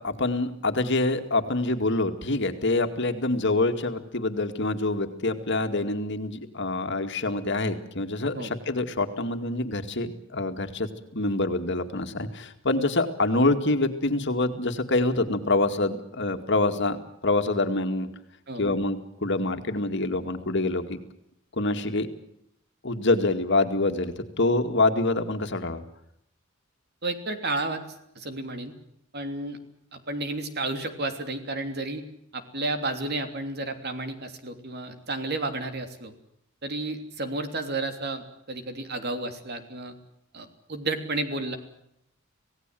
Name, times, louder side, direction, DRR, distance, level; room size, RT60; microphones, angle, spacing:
voice 1, 0.0-17.0 17.2-18.1 18.6-21.0 21.6-22.1 22.8-25.8, left 2 dB, 60° left, 7 dB, 2.2 m, -26 dB
voice 2, 27.0-27.8 28.1-28.7 29.1-29.6 29.9-32.0 32.3-36.1 36.6-39.9 40.3-41.6, right 2 dB, 55° right, 7 dB, 3.1 m, -32 dB
26.5 x 17.5 x 7.7 m, 0.76 s
head